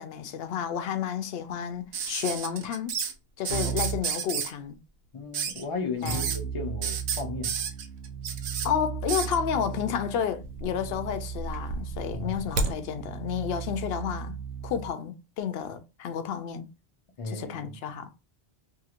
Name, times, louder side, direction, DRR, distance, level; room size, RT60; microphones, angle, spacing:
voice 1, 0.0-2.9 3.4-4.8 6.0-6.2 8.6-14.4 14.6-16.7 17.2-18.1, left 8 dB, 75° left, 0.8 m, -31 dB
sound 1, 1.9-3.1 3.4-4.5 5.3-5.6 6.0-6.4 6.8-8.7 9.1-9.4 10.4-11.0 11.3-12.7 14.1-14.2, right 6 dB, 90° right, 0.9 m, -31 dB
Keyboard (musical), 3.5-4.1 6.0-14.9, right 7 dB, 60° right, 0.9 m, -36 dB
voice 2, 5.1-7.5 12.1-12.3 17.2-17.8, left 3 dB, 45° left, 0.4 m, -35 dB
2.8 x 2.7 x 2.4 m
omnidirectional pair, 1.1 m